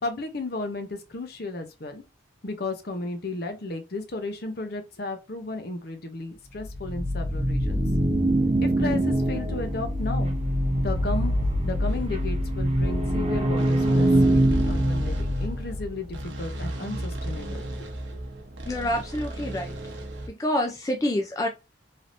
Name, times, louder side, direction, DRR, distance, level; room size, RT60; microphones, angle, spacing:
voice 1, 0.0-2.0 2.4-7.8 8.6-10.3 10.8-11.3 11.6-17.7 18.1-18.2, left 2 dB, 55° left, 0.7 m, -34 dB
sound 1, 6.6-15.9, right 1 dB, 35° right, 0.7 m, -24 dB
sound 2, 11.9-20.3, right 1 dB, 80° right, 0.8 m, -36 dB
voice 2, 18.7-19.7 20.3-21.5, left 1 dB, 20° left, 0.3 m, -27 dB
3.3 x 2.7 x 2.5 m
head